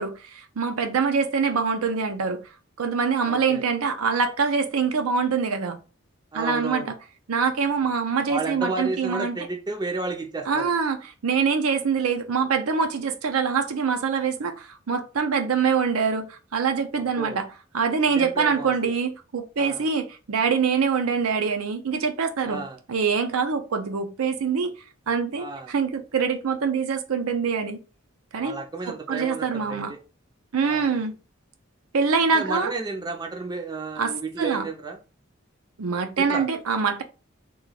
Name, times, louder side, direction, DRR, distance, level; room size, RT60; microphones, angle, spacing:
voice 1, 0.0-2.4 2.8-5.8 6.3-6.9 7.3-9.4 10.5-11.0 11.2-17.5 17.7-24.7 25.1-27.8 28.3-28.6 29.1-29.9 30.5-31.1 31.9-32.7 34.0-34.1 34.4-34.7 35.8-37.0, right 5 dB, 85° right, 0.6 m, -24 dB
voice 2, 3.2-3.6 6.3-6.9 8.3-10.7 17.2-17.4 18.1-18.9 19.6-19.9 22.4-22.8 25.4-25.7 28.4-30.0 30.6-31.0 32.3-35.0 36.2-36.5, right 3 dB, 20° right, 0.5 m, -32 dB
3.0 x 2.2 x 3.8 m
head